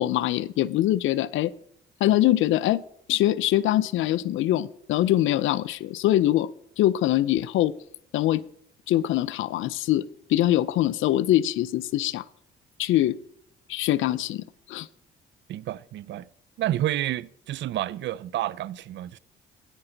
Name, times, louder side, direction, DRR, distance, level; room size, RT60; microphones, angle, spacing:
voice 1, 0.0-1.5 2.0-2.8 3.1-6.5 6.8-7.7 8.1-8.4 8.9-10.0 10.3-12.2 12.8-13.2 13.7-14.9, left 14 dB, 80° left, 0.5 m, -23 dB
voice 2, 15.5-16.3 16.6-19.2, right 13 dB, 70° right, 0.4 m, -30 dB
10.0 x 9.8 x 3.9 m
cardioid pair, 90°, 20 cm